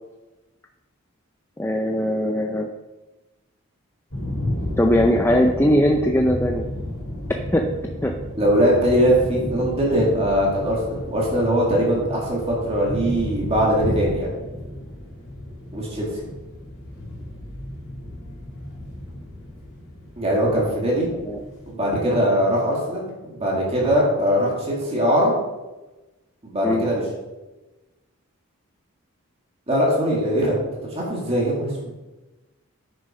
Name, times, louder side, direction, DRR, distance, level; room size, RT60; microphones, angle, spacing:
voice 1, 1.6-2.7 4.8-6.6 7.5-7.6 8.0-8.1 21.3-21.4 26.6-26.8, equal, 10° left, 2 dB, 0.5 m, -20 dB
sound 1, 4.1-21.7, left 1 dB, 75° left, 3.7 m, -33 dB
voice 2, 8.4-14.3 15.7-16.1 20.2-21.1 21.7-25.3 26.4-27.0 29.7-30.6 30.9-32.0, equal, 30° right, -4 dB, 2.2 m, -21 dB
9.0 x 6.8 x 5.2 m, 1.1 s
head